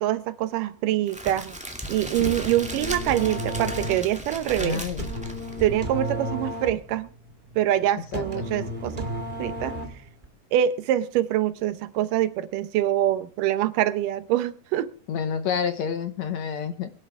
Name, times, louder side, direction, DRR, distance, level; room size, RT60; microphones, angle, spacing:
voice 1, 0.0-1.6 1.9-4.8 5.6-7.1 7.6-9.0 9.4-9.7 10.5-14.9, right 12 dB, 75° right, 13 dB, 2.3 m, -25 dB
Crackle, 1.1-6.1, equal, 5° right, 1.6 m, -36 dB
sound 1, 2.0-10.3, equal, 40° right, 0.7 m, -34 dB
voice 2, 4.6-5.0 8.1-8.5 15.1-16.9, left 7 dB, 70° left, 9 dB, 1.8 m, -29 dB
22.5 x 11.5 x 3.5 m, 0.39 s
omnidirectional pair, 4.0 m